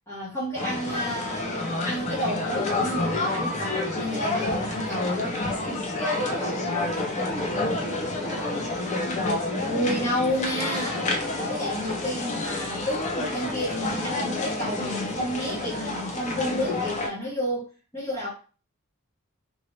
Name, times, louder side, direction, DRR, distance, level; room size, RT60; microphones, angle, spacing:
voice 1, 0.1-5.4 5.7-5.9 9.7-11.1 11.4-17.7 17.9-18.3, equal, 10° left, -9 dB, 1.1 m, -30 dB
sound 1, 0.5-17.1, left 2 dB, 30° left, 0.5 m, -29 dB
voice 2, 6.1-8.8, right 1 dB, 5° right, -6 dB, 1.3 m, -37 dB
2.9 x 2.6 x 3.1 m, 0.36 s
head